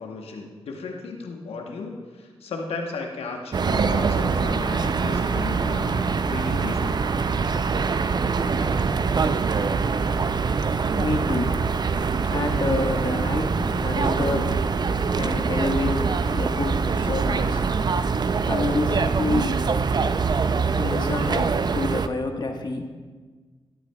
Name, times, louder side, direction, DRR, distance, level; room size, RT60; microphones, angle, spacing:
voice 1, 0.0-7.0, left 4 dB, 80° left, 1 dB, 1.1 m, -35 dB
sound 1, 3.5-22.1, right 5 dB, 45° right, 0.4 m, -24 dB
voice 2, 11.0-11.7 12.0-17.6 18.5-19.8 20.8-22.9, left 2 dB, 45° left, 3 dB, 1.4 m, -28 dB
13.0 x 9.2 x 2.3 m, 1.4 s
supercardioid pair, 45°, 10 cm